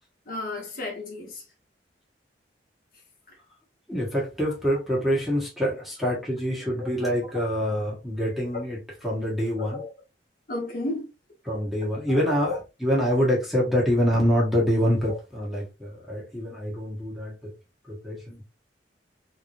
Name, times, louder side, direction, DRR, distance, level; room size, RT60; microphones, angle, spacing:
voice 1, 0.3-1.4 6.8-6.9 7.2-7.3 9.6-9.9 10.5-11.1 12.1-12.6 15.1-15.2, left 2 dB, 50° left, 1.4 m, -33 dB
voice 2, 3.9-9.8 11.4-17.5 17.9-18.4, equal, ahead, 1.4 m, -26 dB
3.9 x 3.2 x 2.6 m
head